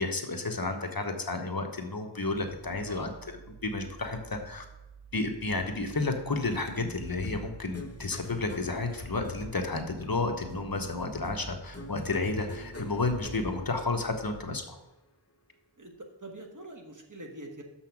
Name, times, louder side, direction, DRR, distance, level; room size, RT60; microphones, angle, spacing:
voice 1, 0.0-3.1 3.6-4.6 5.1-14.8, left 3 dB, 50° left, 5 dB, 1.1 m, -31 dB
sound 1, 2.3-14.3, right 7 dB, 75° right, 1.5 m, -51 dB
voice 2, 2.7-3.1 15.8-17.6, right 1 dB, 40° right, 2 dB, 1.4 m, -45 dB
sound 2, 6.7-14.3, left 2 dB, 30° left, 0.9 m, -44 dB
7.0 x 5.7 x 5.9 m, 1.0 s
wide cardioid pair, 55°, 46 cm